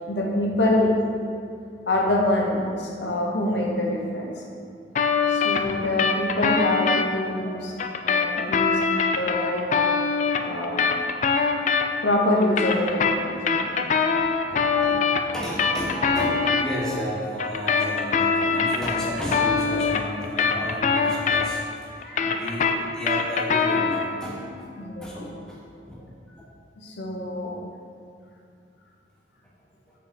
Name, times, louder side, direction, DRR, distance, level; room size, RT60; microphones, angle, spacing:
voice 1, 0.1-0.9 1.9-4.3 5.3-7.6 8.0-8.8 9.2-9.7 10.4-10.9 12.0-13.9 24.8-25.3 26.8-27.5, left 1 dB, 70° left, -1 dB, 0.9 m, -25 dB
sound 1, 4.9-7.0 7.8-12.1 12.4-16.6 17.4-21.7 22.0-24.1, left 5 dB, 40° left, 0.3 m, -23 dB
sound 2, 13.5-20.1 20.5-20.6, right 1 dB, 65° right, 1.4 m, -38 dB
voice 2, 14.5-15.0 15.3-24.7 25.0-26.5, left 1 dB, 5° left, -6 dB, 1.0 m, -33 dB
5.7 x 5.1 x 4.3 m, 2.4 s
head